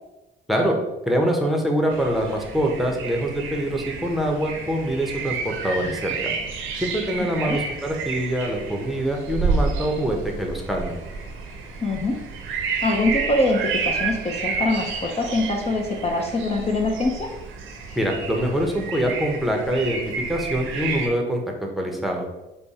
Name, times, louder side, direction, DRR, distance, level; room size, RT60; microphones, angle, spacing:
voice 1, 1.1-6.3 6.8-11.0 17.9-20.0 20.3-22.2, right 1 dB, ahead, 0 dB, 0.8 m, -24 dB
sound 1, 1.9-21.1, right 5 dB, 85° right, 0.9 m, -30 dB
voice 2, 11.8-12.2 12.8-17.3, left 2 dB, 30° left, 1 dB, 0.6 m, -24 dB
5.3 x 2.2 x 4.1 m, 0.99 s
cardioid pair, 90°, 20 cm